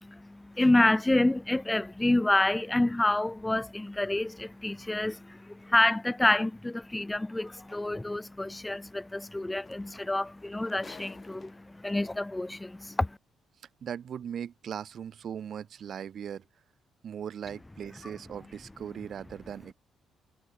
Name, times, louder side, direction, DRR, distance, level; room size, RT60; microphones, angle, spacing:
voice 1, 0.0-13.2, left 2 dB, 10° left, 0.6 m, -28 dB
sound 1, 7.5-7.6 9.3-9.4 9.6-11.9 12.8-12.9, left 4 dB, 35° left, 5.7 m, -51 dB
voice 2, 13.8-16.4 17.0-19.7, right 8 dB, 60° right, 4.1 m, -39 dB
cardioid pair, 90°, 0 cm